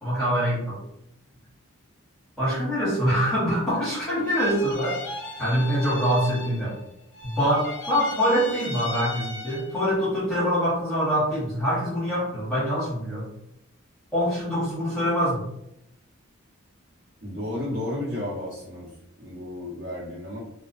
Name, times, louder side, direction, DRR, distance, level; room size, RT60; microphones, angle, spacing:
voice 1, 0.0-0.8 2.4-5.0 5.4-6.7 7.2-13.3 14.1-15.5, equal, 5° left, -10 dB, 1.0 m, -24 dB
sound 1, 4.2-6.9 7.1-9.9, left 2 dB, 55° left, 0.4 m, -37 dB
voice 2, 17.2-18.9 19.2-20.4, left 1 dB, 65° right, -7 dB, 1.1 m, -32 dB
2.3 x 2.2 x 2.4 m, 0.78 s
head